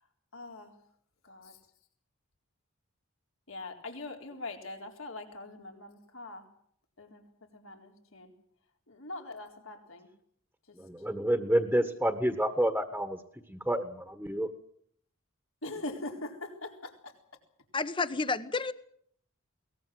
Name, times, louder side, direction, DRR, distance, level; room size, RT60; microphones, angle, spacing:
voice 1, 0.3-0.7 1.2-1.6 3.5-6.5 7.0-7.2 7.5-8.3 8.9-10.1 10.7-10.8 15.6-17.1, left 2 dB, 70° left, 3 dB, 4.1 m, -42 dB
voice 2, 10.8-13.2 13.5-14.5, right 1 dB, 5° right, 7 dB, 1.5 m, -29 dB
voice 3, 17.7-18.7, left 3 dB, 20° left, 14 dB, 1.1 m, -30 dB
22.5 x 19.5 x 7.8 m, 0.64 s
head